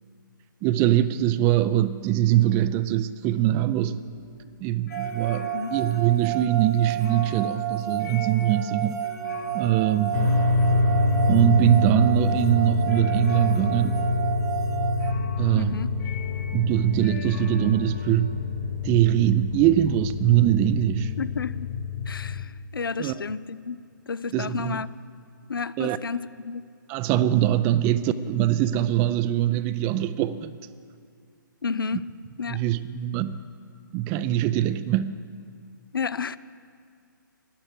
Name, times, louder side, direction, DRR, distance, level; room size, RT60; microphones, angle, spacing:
voice 1, 0.6-4.0 4.6-9.0 9.5-10.2 11.3-14.0 15.4-15.8 16.5-18.3 18.8-21.1 23.0-23.2 24.3-24.8 25.8-26.0 26.9-30.5 31.9-32.0 32.5-33.4 33.9-35.2, right 13 dB, 20° right, 0.4 m, -22 dB
sound 1, 4.1-19.0, left 4 dB, 60° left, 2.8 m, -43 dB
sound 2, 4.9-15.1, right 10 dB, 55° right, 0.9 m, -31 dB
voice 2, 5.4-5.8 15.6-15.9 21.2-21.7 22.1-23.8 24.1-24.9 25.5-26.6 31.6-32.1 32.4-32.6 35.9-36.4, left 5 dB, 85° left, 0.5 m, -31 dB
sound 3, 10.1-22.4, left 3 dB, 25° left, 1.4 m, -26 dB
11.5 x 11.5 x 7.7 m
hypercardioid pair, 145°, 11 cm